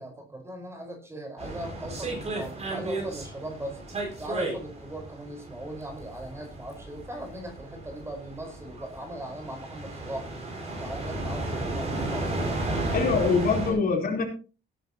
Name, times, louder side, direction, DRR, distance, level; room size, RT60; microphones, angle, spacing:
voice 1, 0.0-3.8 4.2-10.3 10.8-12.6 13.5-13.8, right 1 dB, 15° right, 4 dB, 5.1 m, -39 dB
sound 1, 1.4-13.7, right 2 dB, 30° right, 7.2 m, -34 dB
voice 2, 12.9-14.2, left 5 dB, 45° left, 2 dB, 4.2 m, -24 dB
18.0 x 11.0 x 3.0 m, 0.34 s
cardioid pair, 160°, 20 cm